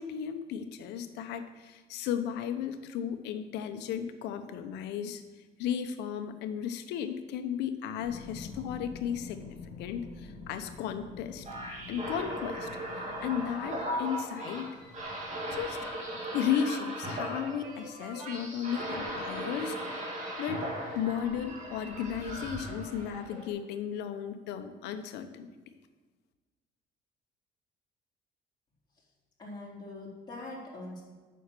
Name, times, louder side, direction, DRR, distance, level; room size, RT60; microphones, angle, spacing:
voice 1, 0.0-5.2 5.6-9.4 9.8-11.5 11.9-12.7 12.9-14.7 15.5-15.8 16.3-20.0 20.4-20.7 20.9-25.5, left 8 dB, 90° left, 9 dB, 0.9 m, -34 dB
sound 1, 8.0-13.8, left 4 dB, 50° left, 2.4 m, -47 dB
sound 2, 11.4-23.5, right 1 dB, 45° right, 3.1 m, -38 dB
voice 2, 29.4-31.0, left 2 dB, 25° left, -5 dB, 3.4 m, -42 dB
8.7 x 6.4 x 6.8 m, 1.4 s
cardioid pair, 110°, 17 cm